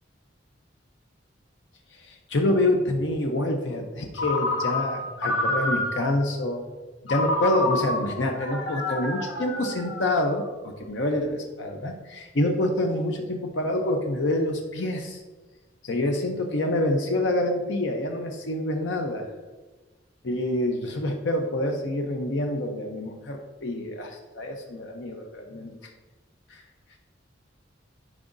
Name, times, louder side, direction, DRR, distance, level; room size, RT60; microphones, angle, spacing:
voice 1, 1.9-6.6 7.1-15.2 15.8-19.3 20.2-25.7 26.5-26.6, left 1 dB, 70° left, 3 dB, 0.7 m, -27 dB
Ringtone, 4.1-6.2 7.1-10.4, left 2 dB, 90° left, 1.4 m, -28 dB
11.0 x 4.9 x 2.6 m, 1.2 s
head